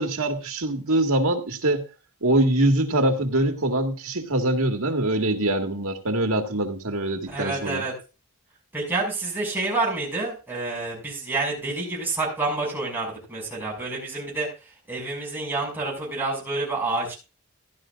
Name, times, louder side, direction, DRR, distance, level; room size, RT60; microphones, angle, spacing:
voice 1, 0.0-1.8 2.2-7.8, right 1 dB, 70° right, 4 dB, 2.0 m, -23 dB
voice 2, 7.3-7.9 8.7-14.5 14.9-17.2, right 3 dB, 10° right, -2 dB, 6.1 m, -28 dB
16.0 x 11.5 x 2.5 m, 0.31 s
head